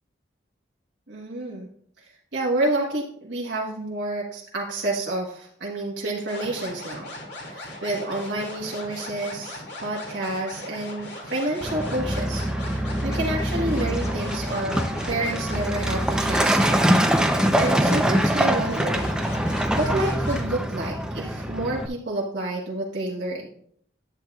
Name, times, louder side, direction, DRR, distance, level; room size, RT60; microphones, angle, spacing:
voice 1, 1.1-1.7 2.3-7.1 7.5-16.8 17.6-19.1 19.3-19.5 19.8-23.5, right 2 dB, 75° right, -4 dB, 1.4 m, -29 dB
sound 1, 6.3-20.5, left 1 dB, 65° left, 2.3 m, -39 dB
Truck, 11.6-21.9, equal, 5° right, 0.5 m, -24 dB
10.5 x 8.2 x 2.3 m, 0.65 s
head